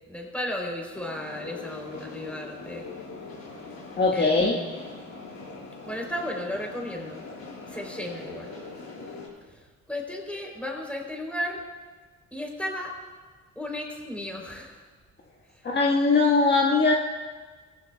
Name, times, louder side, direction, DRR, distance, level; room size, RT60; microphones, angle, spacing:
voice 1, 0.1-2.9 4.1-4.8 5.8-7.3 7.7-8.5 9.5-11.6 12.3-13.0 13.6-14.8, left 1 dB, 5° left, 0 dB, 3.6 m, -34 dB
sound 1, 0.9-9.3, left 3 dB, 65° left, 4.8 m, -41 dB
voice 2, 4.0-4.5 15.6-16.9, left 3 dB, 35° left, -2 dB, 1.6 m, -20 dB
20.5 x 15.0 x 2.4 m, 1.4 s
cardioid pair, 90°, 30 cm